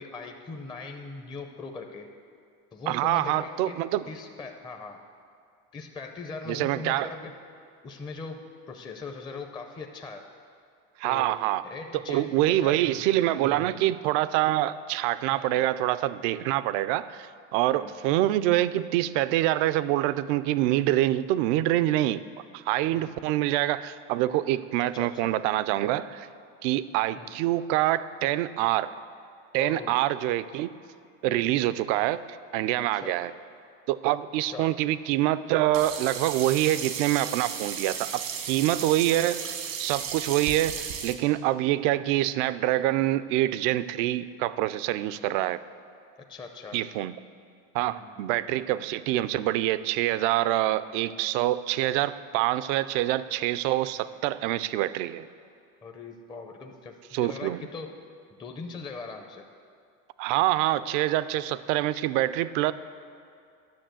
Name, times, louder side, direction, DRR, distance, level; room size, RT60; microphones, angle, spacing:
voice 1, 0.0-2.1 2.7-3.8 4.1-5.0 5.7-7.4 7.8-10.3 11.0-11.4 11.6-13.0 13.4-13.8 15.3-15.6 17.7-17.9 22.9-23.2 24.8-25.3 27.1-27.3 29.6-30.0 31.2-31.6 32.9-33.2 34.4-34.7 46.3-46.8 47.8-48.2 55.8-57.9 58.4-59.4, left 4 dB, 10° left, 4 dB, 0.5 m, -40 dB
voice 2, 2.9-4.0 6.5-7.1 11.0-11.6 12.1-22.2 22.5-26.3 26.6-28.9 29.5-30.7 31.2-32.2 32.5-33.3 33.9-45.6 46.7-47.1 47.7-55.3 57.1-57.7 60.2-62.7, right 14 dB, 65° right, 15 dB, 0.5 m, -26 dB
Sink (filling or washing), 35.7-41.1, right 7 dB, 85° right, 1.5 m, -34 dB
10.5 x 6.3 x 7.6 m, 2.4 s
supercardioid pair, 120°, 40 cm